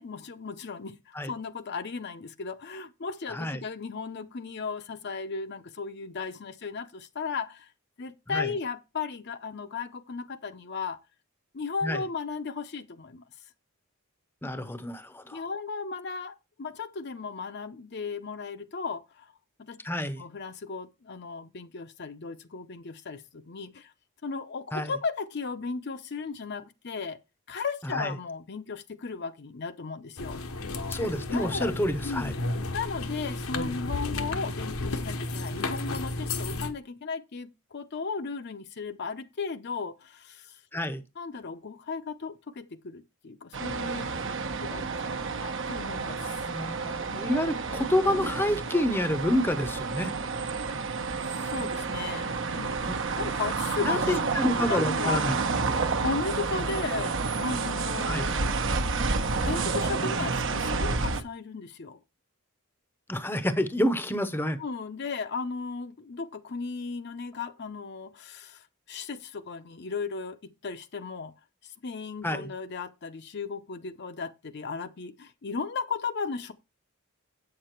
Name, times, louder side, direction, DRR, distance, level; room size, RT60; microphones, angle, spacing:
voice 1, 0.0-7.7 8.0-11.0 11.5-13.2 14.4-14.8 15.3-19.3 19.7-19.8 20.2-23.9 24.2-27.2 27.5-30.4 31.3-31.7 32.0-32.3 32.7-40.6 41.2-44.4 44.6-46.5 47.1-47.3 51.2-55.2 56.0-58.3 59.4-62.0 64.6-71.3 71.6-76.5, left 4 dB, 50° left, 0.6 m, -36 dB
voice 2, 3.3-3.6 8.3-8.5 11.8-12.0 14.4-15.4 19.8-20.2 24.7-24.9 27.9-28.1 30.9-32.3 40.7-41.0 46.5-50.1 52.8-52.9 53.9-55.4 55.6-55.8 58.0-58.3 63.1-64.6 72.2-72.5, left 1 dB, 10° left, 0.7 m, -28 dB
sound 1, 30.2-36.7, left 2 dB, 85° left, 1.0 m, -33 dB
sound 2, 43.5-61.2, right 4 dB, 60° right, 1.0 m, -30 dB
8.4 x 6.7 x 4.4 m
head